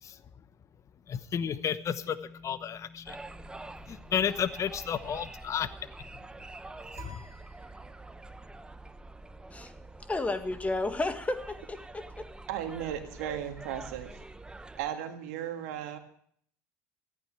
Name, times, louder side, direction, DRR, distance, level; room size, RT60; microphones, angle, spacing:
voice 1, 0.0-0.4 1.1-3.2 3.9-5.7 6.9-7.2, left 8 dB, 40° left, 14 dB, 1.0 m, -32 dB
sound 1, 1.4-10.8, left 4 dB, 70° left, 4.9 m, -57 dB
sound 2, 3.1-14.9, right 2 dB, 10° right, 0.8 m, -46 dB
sound 3, 6.9-8.4, right 3 dB, 30° right, 3.6 m, -52 dB
voice 2, 10.1-12.3, left 2 dB, 15° left, 9 dB, 1.8 m, -32 dB
voice 3, 12.5-14.2 14.8-16.0, right 10 dB, 80° right, 6 dB, 1.9 m, -36 dB
14.5 x 9.1 x 8.5 m, 0.63 s
hypercardioid pair, 85°, 8 cm